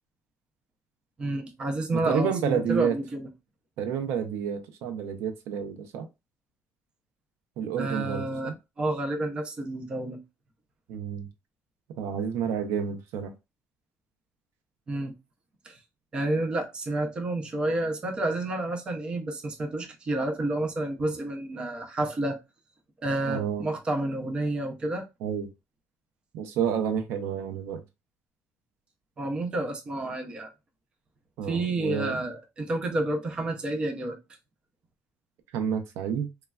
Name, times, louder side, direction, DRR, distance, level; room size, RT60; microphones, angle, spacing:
voice 1, 1.2-3.3 7.8-8.5 8.8-10.2 14.9-15.1 15.6-15.8 16.1-22.4 23.0-25.1 29.2-30.5 31.5-34.2, right 2 dB, 20° right, 0.5 m, -30 dB
voice 2, 1.9-2.9 3.8-6.1 7.6-8.5 10.9-11.3 12.0-13.3 23.3-23.7 25.2-25.5 26.3-27.8 31.4-32.1 35.5-36.3, right 8 dB, 80° right, 0.5 m, -29 dB
3.1 x 2.3 x 2.3 m
cardioid pair, 170°, 4 cm